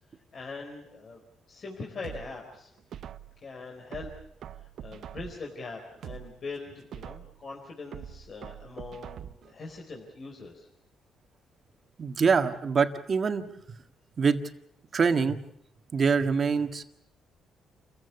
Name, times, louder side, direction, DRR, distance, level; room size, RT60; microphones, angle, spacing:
voice 1, 0.3-2.7 3.4-4.1 4.6-10.7, left 3 dB, 50° left, 1 dB, 4.2 m, -42 dB
sound 1, 2.0-3.4 3.9-5.5 5.9-7.4 7.9-9.5 9.9-10.0, right 9 dB, 65° right, 0.8 m, -44 dB
voice 2, 12.0-13.5 14.2-14.4 14.9-15.4 15.9-16.8, right 5 dB, 45° right, 7 dB, 1.7 m, -24 dB
28.5 x 15.5 x 8.2 m, 0.75 s
cardioid pair, 90°, 0 cm